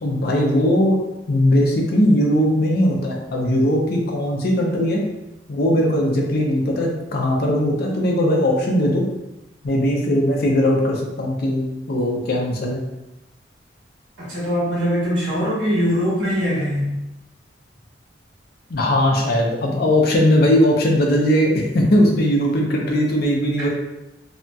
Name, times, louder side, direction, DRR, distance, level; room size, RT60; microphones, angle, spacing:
voice 1, 0.0-5.0 5.5-9.0 9.6-12.8 18.7-23.7, equal, 60° left, 0 dB, 0.5 m, -19 dB
voice 2, 14.2-16.9, equal, 85° right, -8 dB, 1.4 m, -22 dB
2.7 x 2.6 x 2.2 m, 0.95 s
head